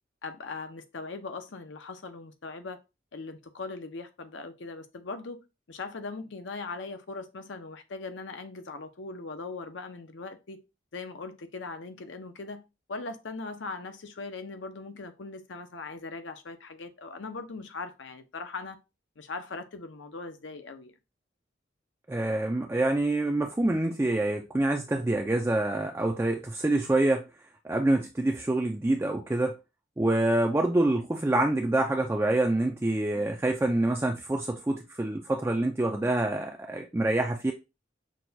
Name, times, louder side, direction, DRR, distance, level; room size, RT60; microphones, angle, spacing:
voice 1, 0.2-2.8 3.1-5.4 5.7-10.6 10.9-12.6 12.9-18.8 19.2-20.9, left 3 dB, 75° left, 0.7 m, -40 dB
voice 2, 22.1-27.3 27.6-29.6 30.0-37.5, right 2 dB, 15° right, 0.3 m, -26 dB
6.0 x 2.3 x 2.7 m
head